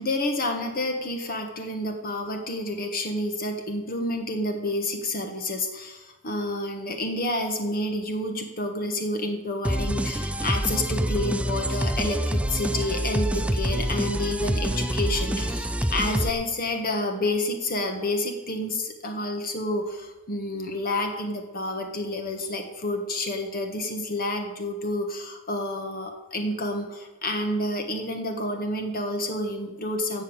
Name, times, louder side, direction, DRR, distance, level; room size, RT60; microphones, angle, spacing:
voice 1, 0.0-30.2, left 1 dB, 45° left, 4 dB, 1.5 m, -29 dB
sound 1, 9.6-16.3, right 1 dB, 5° right, 0.5 m, -26 dB
15.5 x 5.5 x 8.7 m, 1.1 s
head